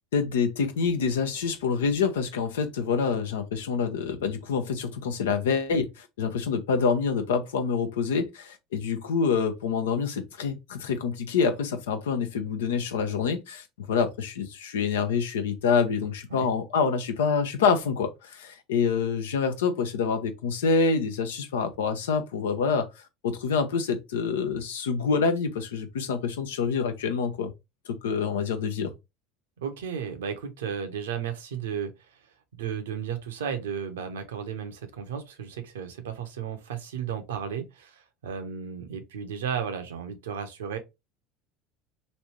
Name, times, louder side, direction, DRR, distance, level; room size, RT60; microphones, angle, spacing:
voice 1, 0.1-22.9 23.2-27.5 28.0-28.9, left 5 dB, 75° left, 0.6 m, -26 dB
voice 2, 29.6-31.9 32.6-40.8, right 7 dB, 75° right, 0.7 m, -34 dB
3.2 x 2.6 x 3.0 m
hypercardioid pair, 75°, 0 cm